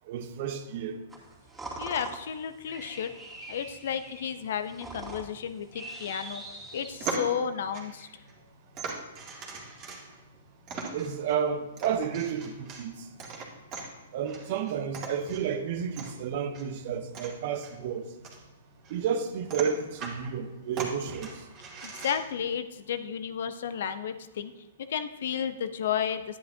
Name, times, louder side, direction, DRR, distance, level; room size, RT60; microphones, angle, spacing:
voice 1, 0.1-1.0 10.9-13.1 14.1-18.1 18.9-21.5, right 7 dB, 50° right, 0.8 m, -31 dB
sound 1, 1.1-7.3, right 2 dB, 10° right, 2.4 m, -43 dB
voice 2, 1.8-3.1 3.5-6.4 6.7-8.1 21.8-24.5 24.9-26.4, left 8 dB, 60° left, 0.6 m, -32 dB
sound 2, 6.7-22.5, right 4 dB, 30° right, 1.9 m, -41 dB
10.5 x 10.0 x 2.7 m
hypercardioid pair, 120°, 0 cm